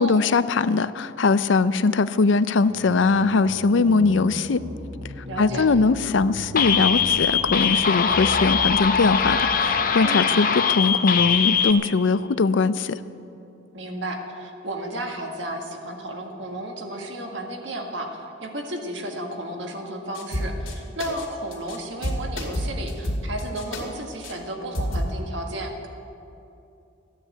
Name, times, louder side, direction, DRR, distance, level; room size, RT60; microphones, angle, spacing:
voice 1, 0.0-4.6 5.4-13.0, left 4 dB, 70° left, 14 dB, 0.5 m, -21 dB
sound 1, 2.7-9.7, equal, 35° right, 2.0 m, -37 dB
voice 2, 5.3-5.7 10.0-10.4 13.7-25.9, right 1 dB, 65° right, 3 dB, 1.8 m, -33 dB
sound 2, 6.6-11.7, left 6 dB, 45° left, 0.8 m, -22 dB
sound 3, 20.1-20.7 21.0-21.3 21.5-21.8 22.0-23.8 24.2-24.3 24.7-25.1, equal, 90° left, 2.6 m, -28 dB
14.0 x 9.9 x 8.2 m, 2.8 s
head